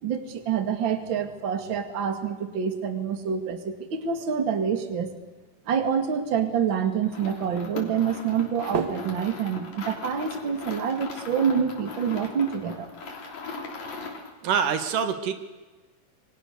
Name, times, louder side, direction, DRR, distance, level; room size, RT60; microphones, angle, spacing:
voice 1, 0.0-5.1 5.7-12.9, right 7 dB, 40° right, 7 dB, 2.5 m, -27 dB
sound 1, 7.0-14.4, left 4 dB, 60° left, 4.6 m, -39 dB
voice 2, 14.4-15.3, right 7 dB, 85° right, 8 dB, 3.3 m, -25 dB
28.0 x 24.5 x 6.7 m, 1.3 s
omnidirectional pair, 3.7 m